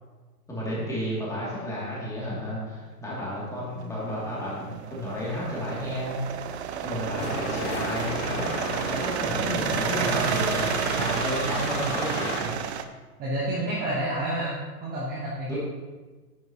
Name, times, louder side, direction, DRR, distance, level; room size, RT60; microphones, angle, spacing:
voice 1, 0.5-6.1 6.8-12.5 15.5-15.6, equal, 5° left, -7 dB, 2.6 m, -32 dB
sound 1, 3.8-12.8, right 8 dB, 45° right, 0.6 m, -30 dB
sound 2, 7.2-12.4, left 5 dB, 50° left, 1.4 m, -34 dB
voice 2, 9.4-9.8 13.2-15.6, right 1 dB, 20° right, -6 dB, 1.3 m, -30 dB
9.7 x 9.2 x 3.0 m, 1.3 s
hypercardioid pair, 145°, 48 cm